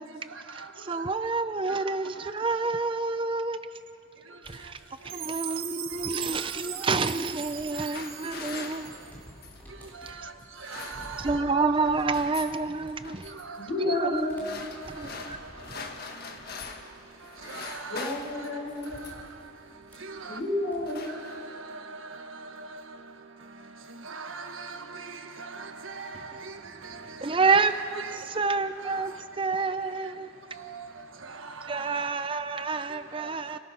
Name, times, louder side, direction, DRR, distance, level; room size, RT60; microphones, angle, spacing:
voice 1, 0.3-1.1 1.7-1.8 2.1-2.7 4.3-4.7 5.0-5.6 6.1-7.1 7.7-8.0 8.3-8.8 9.7-12.2 13.2-14.1 14.6-16.2 17.2-18.1 18.4-18.5 18.9-19.4 19.9-20.4 21.0-30.1 30.5-32.1 32.5-33.6, right 4 dB, 75° right, 1.4 m, -43 dB
voice 2, 0.9-3.6 4.5-4.7 5.1-8.9 11.2-13.2 13.8-14.2 14.9-15.4 27.2-27.7 28.3-29.1 29.4-30.3 31.7-33.6, right 4 dB, 25° right, 0.5 m, -28 dB
sound 1, 4.4-6.8 7.2-21.1, equal, 10° left, 3.6 m, -51 dB
Chime, 5.1-9.3, right 11 dB, 45° right, 0.9 m, -38 dB
sound 2, 7.5-9.7 10.4-11.4 11.7-12.6 13.0-13.4 14.1-17.0 17.2-19.3 20.1-20.3 20.6-21.7, left 4 dB, 50° left, 1.5 m, -43 dB
voice 3, 13.6-14.9 17.9-19.2 20.3-21.1, left 2 dB, 70° left, 5.8 m, -31 dB
29.5 x 18.5 x 5.7 m
head